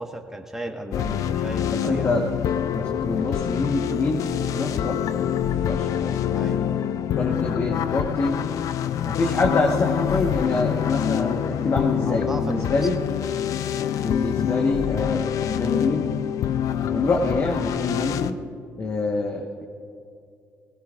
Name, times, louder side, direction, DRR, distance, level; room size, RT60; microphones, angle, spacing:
voice 1, 0.0-2.1 6.3-6.8 12.0-12.8, right 1 dB, 5° right, 2 dB, 1.4 m, -34 dB
sound 1, 0.9-18.3, left 10 dB, 70° left, 0.5 m, -26 dB
voice 2, 1.7-2.2 2.7-6.7 7.2-8.4 9.0-13.0 14.0-16.0 16.8-18.4 18.8-19.6, left 3 dB, 45° left, 1 dB, 1.3 m, -26 dB
18.5 x 17.5 x 2.5 m, 2.4 s
supercardioid pair, 65°, 6 cm